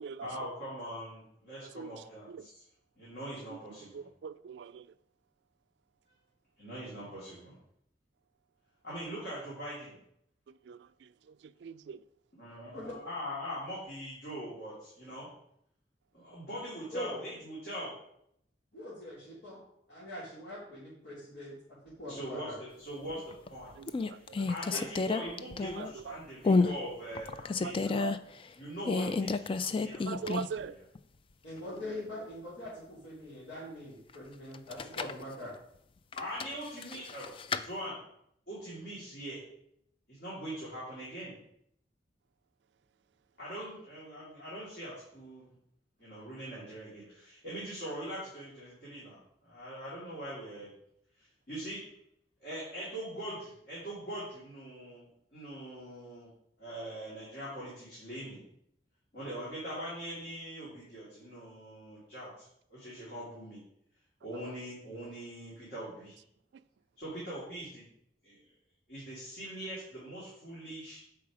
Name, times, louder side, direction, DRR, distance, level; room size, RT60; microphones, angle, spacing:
voice 1, 0.2-2.6 3.0-4.1 6.6-7.5 8.8-10.0 12.4-15.3 16.1-17.9 22.1-23.8 24.1-28.1 28.5-30.8 36.1-38.0 38.5-39.4 40.1-41.3 43.4-45.5 46.0-49.2 49.5-50.7 51.5-51.8 52.4-56.3 56.6-58.4 59.1-63.6 64.2-66.2 67.0-67.8 68.2-68.4 68.9-71.0, equal, 60° left, 2.8 m, -42 dB
voice 2, 3.9-4.8 10.7-10.8 11.6-12.0 23.8-24.5 25.8-26.2 27.6-28.1 30.0-30.7, right 6 dB, 75° right, 0.3 m, -41 dB
voice 3, 16.9-17.2 18.7-19.6 19.9-21.6 22.0-22.6 24.7-24.8 31.4-35.5, left 1 dB, 80° left, 2.9 m, -42 dB
sound 1, 23.1-23.5 23.9-26.0 26.4-26.8 27.1-28.2 28.8-30.6 30.9-31.0 34.5-35.2 36.1-37.6, left 4 dB, 30° left, 0.3 m, -30 dB
7.2 x 4.8 x 4.8 m
head